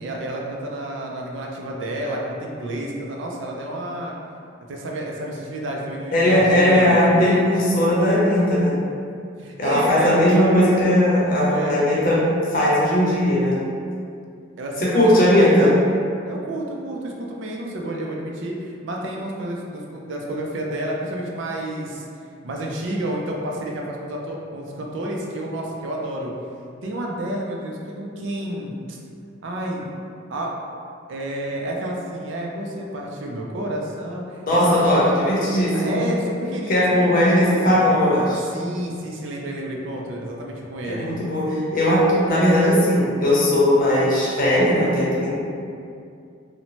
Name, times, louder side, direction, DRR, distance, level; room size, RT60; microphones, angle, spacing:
voice 1, 0.0-4.1 4.7-7.3 9.4-10.2 11.5-11.8 14.6-15.9 16.2-22.1 22.4-26.3 26.8-29.0 29.4-29.8 30.3-30.5 31.1-35.0 35.7-37.8 38.5-41.1, right 1 dB, 70° right, -1 dB, 0.4 m, -30 dB
voice 2, 6.1-8.7 9.6-12.2 12.5-13.6 14.8-15.7 34.5-36.0 36.7-38.4 40.8-45.3, left 1 dB, 45° left, -6 dB, 0.7 m, -18 dB
2.6 x 2.1 x 2.9 m, 2.4 s
head